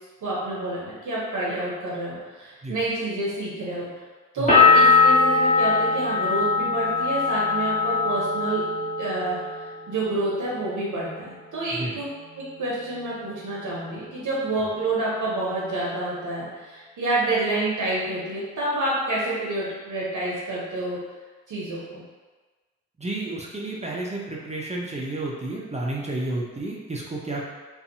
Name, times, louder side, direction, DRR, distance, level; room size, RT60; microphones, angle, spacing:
voice 1, 0.2-3.9 4.3-12.1 12.4-21.0 21.5-22.0, right 2 dB, 60° right, -6 dB, 0.8 m, -28 dB
sound 1, 4.5-10.1 10.4-11.2, left 4 dB, 20° left, 1.1 m, -21 dB
voice 2, 23.0-27.4, right 2 dB, 20° right, -3 dB, 0.5 m, -31 dB
2.5 x 2.3 x 2.6 m, 1.3 s
hypercardioid pair, 45°, 35 cm